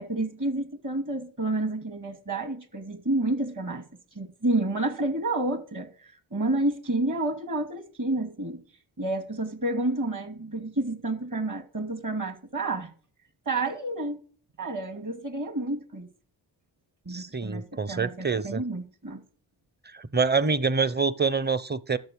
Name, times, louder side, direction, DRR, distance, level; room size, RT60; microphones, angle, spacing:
voice 1, 0.0-3.8 4.1-5.9 6.3-8.6 9.0-12.9 13.5-14.2 14.6-16.1 17.0-19.2, right 2 dB, 40° right, 2.7 m, -29 dB
voice 2, 17.1-18.6 19.9-22.0, right 4 dB, 20° right, 0.9 m, -26 dB
11.5 x 6.9 x 6.4 m
supercardioid pair, 45°, 46 cm